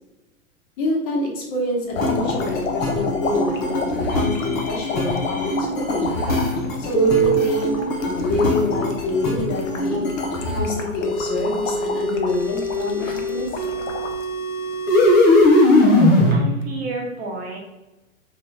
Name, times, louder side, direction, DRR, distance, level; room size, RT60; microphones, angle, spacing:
voice 1, 0.8-6.2 6.8-10.1 10.5-13.6, left 2 dB, 35° left, -2 dB, 1.0 m, -26 dB
sound 1, 1.9-14.2 14.7-15.5 16.4-16.6, left 4 dB, 65° left, 0.7 m, -31 dB
sound 2, 1.9-10.6 11.0-16.3, left 1 dB, 15° left, 0.3 m, -21 dB
voice 2, 16.3-17.6, right 2 dB, 20° right, -1 dB, 0.9 m, -31 dB
3.4 x 2.9 x 3.1 m, 1.0 s
hypercardioid pair, 110°, 42 cm